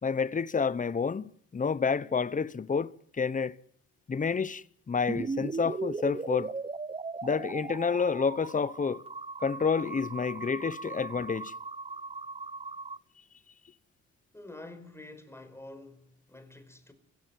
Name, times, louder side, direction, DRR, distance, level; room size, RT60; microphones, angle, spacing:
voice 1, 0.0-3.6 4.1-6.5 7.2-9.0 9.4-11.5, left 5 dB, 25° left, 1.1 m, -29 dB
sound 1, 5.1-13.0, right 4 dB, 20° right, 0.9 m, -38 dB
voice 2, 14.3-16.9, left 2 dB, 10° left, 5.4 m, -48 dB
24.5 x 16.5 x 9.4 m
cardioid pair, 90°, 30 cm